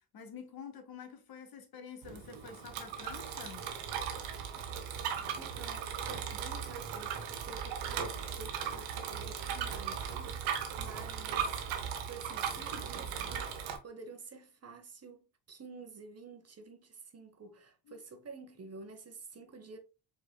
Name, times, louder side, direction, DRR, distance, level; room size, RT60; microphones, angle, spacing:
voice 1, 0.0-3.7 17.9-18.0, left 6 dB, 50° left, 1.1 m, -48 dB
Bicycle, 2.0-13.8, right 8 dB, 80° right, 0.9 m, -38 dB
voice 2, 5.3-13.5 13.8-19.8, right 4 dB, 35° right, 1.0 m, -50 dB
4.7 x 3.4 x 2.2 m
hypercardioid pair, 50°, 46 cm